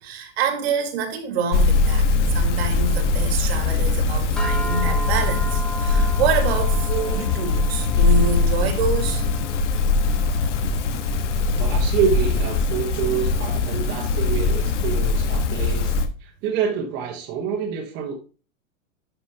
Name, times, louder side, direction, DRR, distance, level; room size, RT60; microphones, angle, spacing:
voice 1, 0.0-2.1 2.3-9.3, right 5 dB, 50° right, 2.0 m, -26 dB
sound 1, 1.5-16.1, left 3 dB, 65° left, 1.4 m, -21 dB
sound 2, 4.4-14.8, right 1 dB, ahead, 0.9 m, -37 dB
voice 2, 11.5-15.9 16.2-18.1, right 7 dB, 25° right, 1.3 m, -27 dB
11.5 x 5.1 x 2.9 m
supercardioid pair, 170°, 39 cm